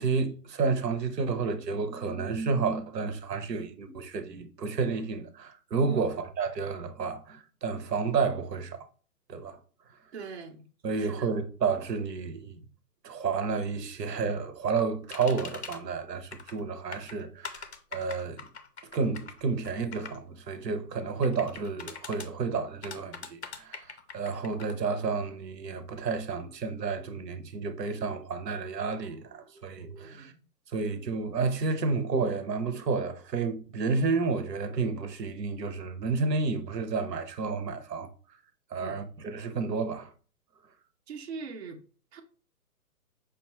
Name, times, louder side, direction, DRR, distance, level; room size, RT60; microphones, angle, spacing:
voice 1, 0.0-8.8 9.3-9.6 10.8-12.6 13.0-18.4 18.9-23.9 24.1-30.3 30.7-38.1 38.7-40.1, right 4 dB, 90° right, 0.8 m, -31 dB
voice 2, 10.1-10.7 11.0-11.3 30.0-30.4 38.7-39.0 41.1-41.8 42.1-42.2, right 4 dB, 45° right, 0.5 m, -41 dB
sound 1, 15.1-15.8 16.3-16.6 16.9-20.2 21.2-22.3 22.8-24.7, left 6 dB, 45° left, 0.4 m, -42 dB
5.1 x 2.3 x 3.0 m
hypercardioid pair, 155°, 48 cm